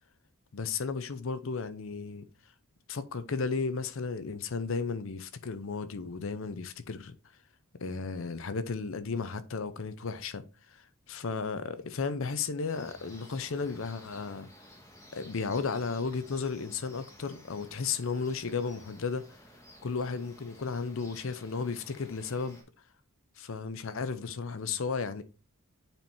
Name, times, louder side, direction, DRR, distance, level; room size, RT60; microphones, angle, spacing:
voice 1, 0.5-2.3 2.9-7.1 7.8-10.4 10.7-14.5 15.1-19.2 19.8-22.6 23.4-25.2, left 4 dB, 60° left, 0.6 m, -34 dB
sound 1, 12.7-22.6, left 1 dB, 15° left, 1.6 m, -54 dB
8.9 x 4.4 x 2.7 m
head